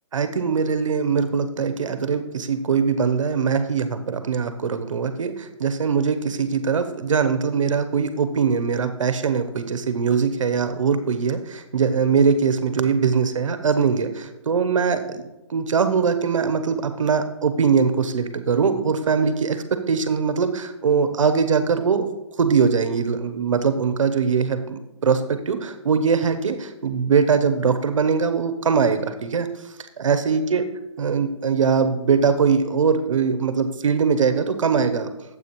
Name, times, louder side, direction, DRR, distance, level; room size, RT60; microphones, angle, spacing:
voice 1, 0.1-22.1 22.4-29.5 30.0-30.7 31.0-35.1, right 5 dB, 80° right, 10 dB, 0.9 m, -21 dB
9.5 x 7.8 x 3.1 m, 0.97 s
hypercardioid pair, 165°, 16 cm